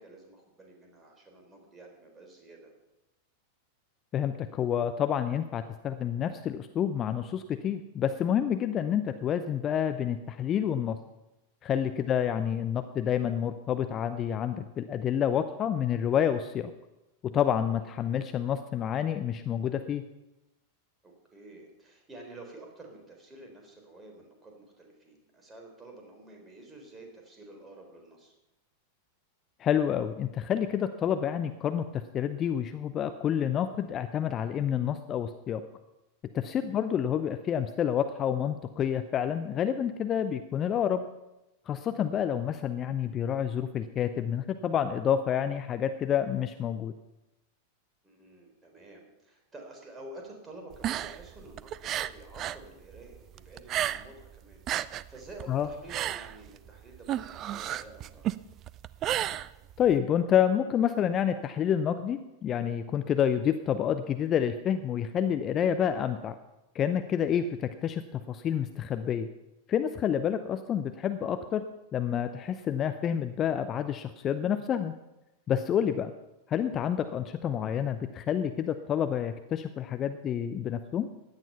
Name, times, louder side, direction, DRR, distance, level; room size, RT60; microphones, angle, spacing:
voice 1, 0.0-2.7 12.1-12.3 17.7-17.9 21.0-28.3 36.7-36.8 48.0-58.3 67.4-67.5 75.9-76.1, right 2 dB, 15° right, 2 dB, 4.1 m, -50 dB
voice 2, 4.1-11.0 11.6-16.7 17.2-20.0 29.6-35.6 36.3-41.0 41.7-46.9 55.5-55.7 59.8-66.3 66.7-69.3 69.7-71.6 71.9-74.9 75.5-76.1 76.5-81.1, left 9 dB, 30° left, 10 dB, 0.7 m, -28 dB
sound 1, 50.7-52.6 52.9-54.3 54.5-60.0, right 12 dB, 35° right, 0.4 m, -33 dB
16.5 x 10.5 x 5.7 m, 0.96 s
figure-of-eight pair, 90°, 0 cm